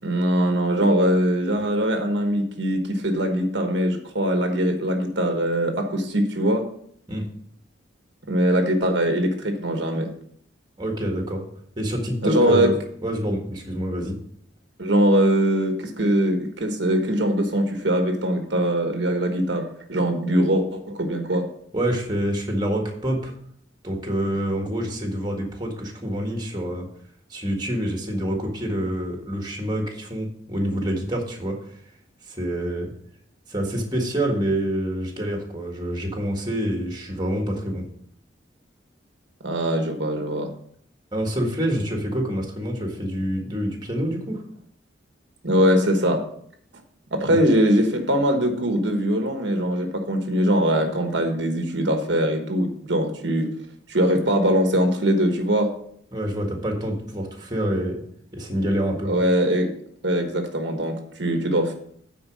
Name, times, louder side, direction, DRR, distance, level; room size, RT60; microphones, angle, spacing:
voice 1, 0.0-6.7 8.3-10.1 12.2-12.7 14.8-21.4 39.4-40.5 45.4-46.2 47.1-53.5 53.9-55.7 59.0-59.7 60.0-61.7, equal, 70° right, 4 dB, 1.2 m, -22 dB
voice 2, 10.8-11.4 11.8-12.7 13.0-14.2 21.7-23.3 23.8-26.9 27.3-31.6 32.3-32.9 33.5-37.8 41.1-44.4 47.3-47.4 56.1-58.0 58.3-59.1, equal, 20° right, 2 dB, 1.7 m, -27 dB
9.3 x 4.5 x 6.2 m, 0.65 s
head